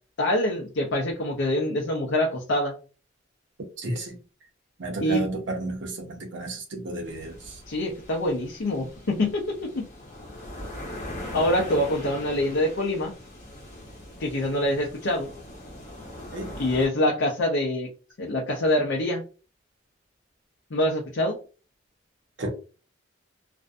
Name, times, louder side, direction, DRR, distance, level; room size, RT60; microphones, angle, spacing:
voice 1, 0.2-2.8 5.0-5.2 7.7-9.9 11.3-13.1 14.2-15.3 16.6-17.9 18.2-19.2 20.7-21.4, left 1 dB, 65° left, 0.5 m, -25 dB
voice 2, 3.8-4.2 4.8-7.4 16.3-16.5 22.4-22.5, right 2 dB, 65° right, 0.7 m, -32 dB
sound 1, 7.0-16.9, left 1 dB, 35° left, 0.8 m, -41 dB
2.5 x 2.2 x 2.5 m
head